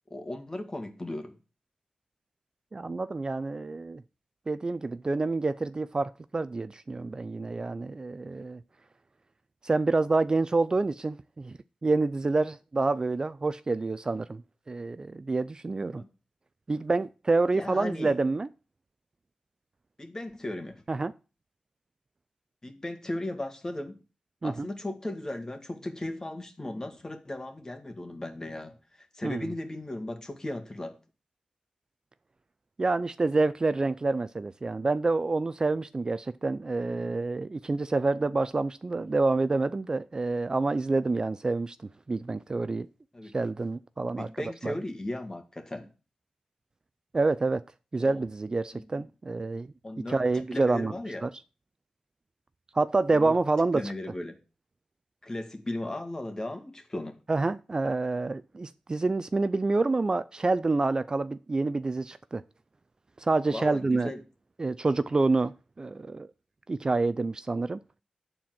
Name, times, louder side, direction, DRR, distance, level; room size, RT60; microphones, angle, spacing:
voice 1, 0.1-1.4 15.9-16.1 17.5-18.2 20.0-20.8 22.6-24.0 24.4-31.0 43.1-43.3 44.1-45.9 48.0-48.2 48.7-49.0 49.8-51.3 53.1-53.3 53.7-54.4 55.2-57.2 63.5-64.2, left 1 dB, 25° left, 1.9 m, -36 dB
voice 2, 2.7-4.0 4.5-8.6 9.6-11.5 11.8-14.4 14.7-16.0 16.7-18.5 20.9-21.1 24.4-24.7 29.2-29.5 32.8-41.8 42.1-42.9 43.3-44.3 44.6-44.7 47.1-47.6 47.9-49.7 50.1-50.9 51.2-51.3 52.7-53.8 57.3-62.4 63.2-64.1 64.6-66.3 66.7-67.8, right 3 dB, 35° right, 0.4 m, -27 dB
9.9 x 4.3 x 7.6 m
cardioid pair, 75°, 2 cm